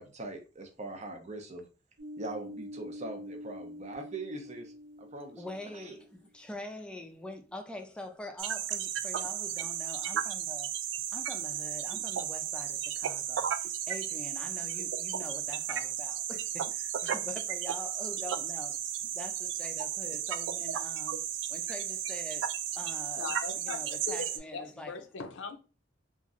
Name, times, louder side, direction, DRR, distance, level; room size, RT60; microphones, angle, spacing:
voice 1, 0.0-1.6 2.2-4.7 5.0-5.4 5.7-5.9, right 2 dB, 40° right, 0.6 m, -41 dB
sound 1, 2.0-6.2, left 1 dB, 60° right, 1.0 m, -46 dB
voice 2, 5.4-10.7 11.1-21.2 21.5-23.3 23.6-24.9, left 1 dB, 5° left, 0.4 m, -45 dB
sound 2, 8.4-24.4, right 10 dB, 80° right, 0.3 m, -34 dB
voice 3, 23.2-25.6, left 5 dB, 85° left, 0.5 m, -40 dB
2.9 x 2.5 x 2.4 m
head